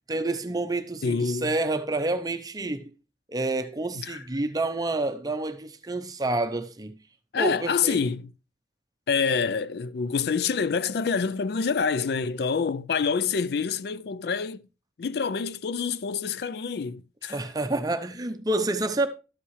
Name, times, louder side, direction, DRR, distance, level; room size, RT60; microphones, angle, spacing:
voice 1, 0.1-2.9 3.3-7.0 7.4-8.0 17.3-19.1, right 2 dB, 20° right, 0.7 m, -28 dB
voice 2, 1.0-1.5 3.9-4.2 7.3-8.3 9.1-14.6 15.0-17.4, left 5 dB, 60° left, 0.4 m, -27 dB
12.5 x 8.5 x 3.1 m
head